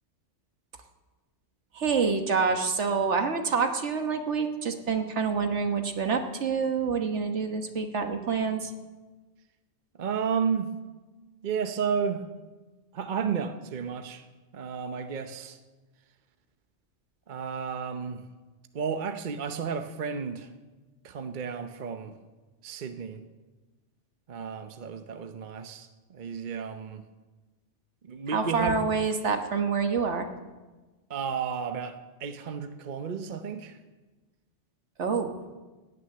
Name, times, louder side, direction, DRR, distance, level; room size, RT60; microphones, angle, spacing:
voice 1, 1.7-8.7 28.3-30.3 35.0-35.3, right 5 dB, 75° right, 5 dB, 1.6 m, -27 dB
voice 2, 10.0-10.8 11.4-12.2 12.9-14.2 14.5-15.6 17.3-18.2 18.7-20.5 21.0-22.1 22.6-23.2 24.3-27.0 28.1-28.8 31.1-33.8, right 6 dB, 45° right, 8 dB, 0.9 m, -32 dB
18.0 x 6.4 x 9.5 m, 1.2 s
omnidirectional pair, 1.2 m